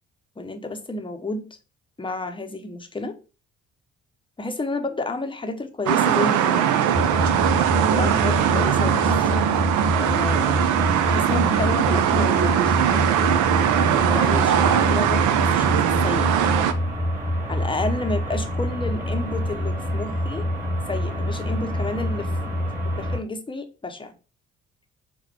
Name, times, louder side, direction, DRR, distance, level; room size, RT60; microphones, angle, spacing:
voice 1, 0.4-1.5 2.0-3.2 4.4-6.9 7.9-9.3 9.9-10.7 11.0-13.3 13.9-16.3 17.5-20.5 20.9-22.3 23.0-24.1, left 2 dB, 15° left, 0.8 m, -30 dB
sound 1, 5.9-16.7, right 10 dB, 50° right, 0.6 m, -20 dB
sound 2, 6.9-23.2, equal, 20° right, 1.8 m, -26 dB
4.8 x 2.2 x 4.6 m
figure-of-eight pair, 40°, 39 cm